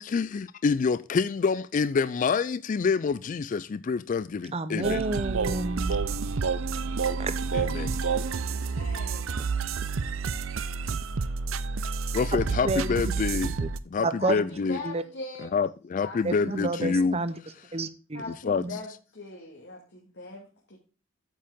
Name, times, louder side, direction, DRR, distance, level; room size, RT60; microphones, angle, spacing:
voice 1, 0.0-5.0 7.5-8.0 12.1-13.6 13.9-14.8 15.5-17.2 18.3-18.6, left 5 dB, 40° left, 0.3 m, -27 dB
voice 2, 4.5-5.9 6.2-6.5 7.2-7.3 12.6-12.9 13.6-13.7 14.0-14.4 14.8-15.0 16.2-17.3 17.7-18.2 18.6-18.8, right 2 dB, 30° right, 0.7 m, -30 dB
Mixed together, 4.8-13.8, right 5 dB, 85° right, 0.6 m, -29 dB
voice 3, 8.4-9.2 11.3-11.4 14.2-15.5 16.0-16.2 16.5-16.6 18.1-20.8, left 3 dB, 60° left, 2.1 m, -41 dB
8.9 x 7.5 x 3.6 m
head